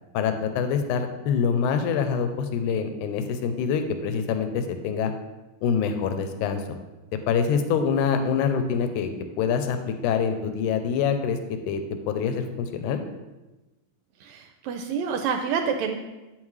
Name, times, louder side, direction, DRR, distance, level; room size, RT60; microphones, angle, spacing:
voice 1, 0.1-5.1 5.6-6.8 7.3-9.1 9.4-11.8 12.1-13.0, left 6 dB, 85° left, 8 dB, 2.1 m, -25 dB
voice 2, 14.2-16.0, right 6 dB, 80° right, 5 dB, 1.7 m, -28 dB
8.2 x 7.3 x 3.2 m, 1.1 s
omnidirectional pair, 3.5 m